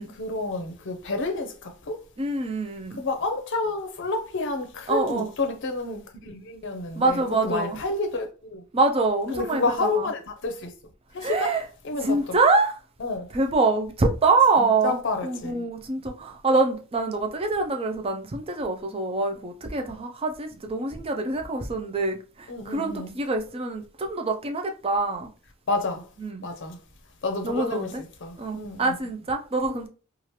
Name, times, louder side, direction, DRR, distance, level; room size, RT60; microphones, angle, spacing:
voice 1, 0.2-2.0 2.9-8.6 9.3-10.7 11.1-11.5 11.8-12.4 13.0-13.3 14.6-15.6 22.5-23.1 25.7-26.0 26.4-26.8 27.2-27.9 28.2-28.9, left 3 dB, 55° left, 0.6 m, -29 dB
voice 2, 2.2-3.0 4.9-5.3 7.0-7.8 8.7-10.1 11.2-11.6 12.0-12.8 13.3-25.3 26.2-26.4 27.4-28.0 28.4-29.9, right 3 dB, 25° right, 0.4 m, -25 dB
2.8 x 2.4 x 3.1 m
head